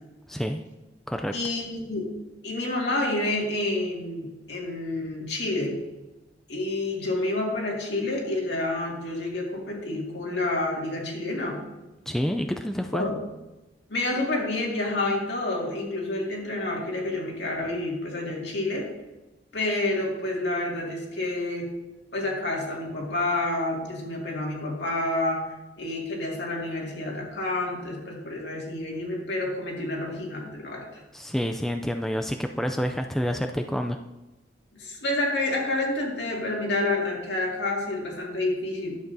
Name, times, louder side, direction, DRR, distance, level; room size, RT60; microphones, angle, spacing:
voice 1, 0.3-0.6 1.1-1.3 12.1-13.0 31.1-34.0, equal, ahead, 4 dB, 0.3 m, -28 dB
voice 2, 1.3-2.1 2.4-5.7 6.5-11.6 12.9-13.2 13.9-18.9 19.5-21.7 22.1-25.4 25.8-31.0 34.8-39.0, left 2 dB, 70° left, -2 dB, 2.1 m, -29 dB
11.5 x 7.6 x 2.7 m, 1.0 s
head